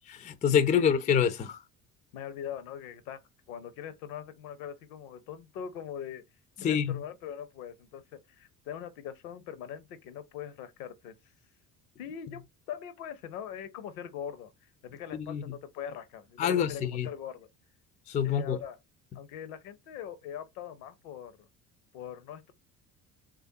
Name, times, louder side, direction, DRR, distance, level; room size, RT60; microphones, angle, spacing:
voice 1, 0.1-1.6 6.6-7.0 15.1-15.4 16.4-17.1 18.1-18.6, left 8 dB, 20° left, 0.4 m, -26 dB
voice 2, 2.1-3.2 3.5-6.2 6.6-11.1 12.0-17.5 18.2-18.8 19.1-21.5 21.9-22.5, left 9 dB, 70° left, 0.7 m, -42 dB
3.3 x 2.4 x 2.6 m
hypercardioid pair, 60°, 47 cm